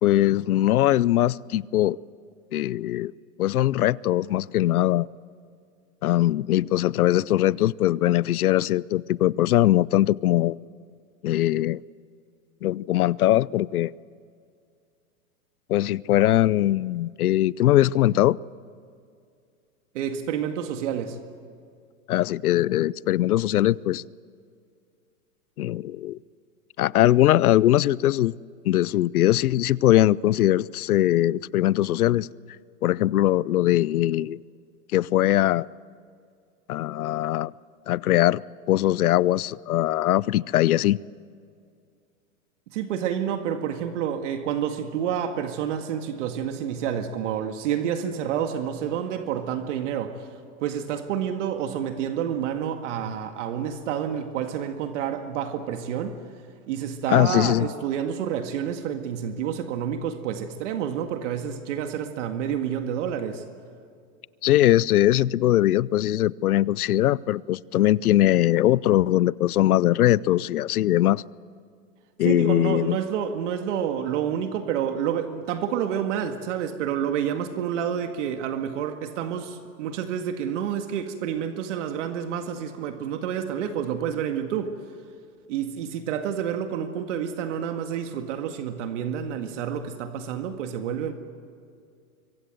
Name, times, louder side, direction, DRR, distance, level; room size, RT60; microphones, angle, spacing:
voice 1, 0.0-2.0 2.5-3.1 3.4-5.1 6.0-10.6 11.2-11.8 12.6-13.9 15.7-18.4 22.1-24.0 25.6-26.2 26.8-28.4 28.6-32.3 32.8-34.4 34.9-35.7 36.7-37.5 37.9-38.4 38.7-41.0 57.1-57.7 64.4-71.2 72.2-73.0, left 14 dB, 85° left, 0.7 m, -21 dB
voice 2, 19.9-21.2 42.7-50.3 50.6-56.2 56.7-63.4 72.2-84.7 85.5-91.1, right 9 dB, 55° right, 2.0 m, -29 dB
25.5 x 24.0 x 7.8 m
hypercardioid pair, 140°, 43 cm